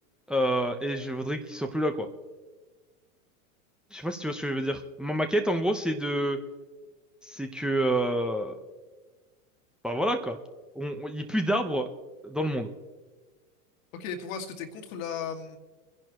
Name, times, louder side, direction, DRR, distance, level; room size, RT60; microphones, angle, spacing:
voice 1, 0.3-2.1 3.9-6.4 7.2-8.6 9.8-10.4 10.7-11.9 12.2-12.7, right 1 dB, ahead, 4 dB, 1.1 m, -28 dB
voice 2, 13.9-15.6, left 6 dB, 65° left, 4 dB, 2.2 m, -36 dB
27.0 x 11.0 x 3.2 m, 1.3 s
hypercardioid pair, 100°, 42 cm